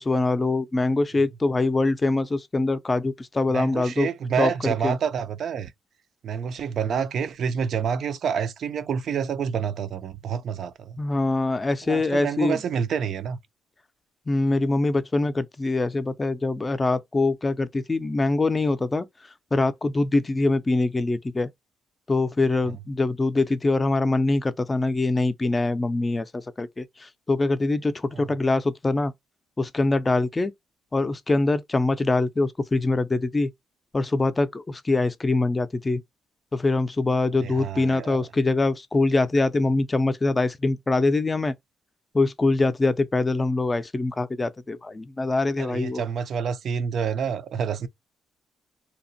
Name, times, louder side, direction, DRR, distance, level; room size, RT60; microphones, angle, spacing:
voice 1, 0.0-4.1 4.4-5.0 11.0-12.6 14.3-19.1 19.5-21.5 22.1-29.1 29.6-30.5 30.9-33.5 33.9-36.0 36.5-41.5 42.1-46.0, left 2 dB, 25° left, 0.4 m, -24 dB
voice 2, 3.5-5.7 6.2-11.0 11.8-13.4 22.6-22.7 28.1-28.3 37.4-38.3 45.6-47.9, right 7 dB, 65° right, 0.4 m, -28 dB
2.8 x 2.0 x 2.6 m
cardioid pair, 90°, 0 cm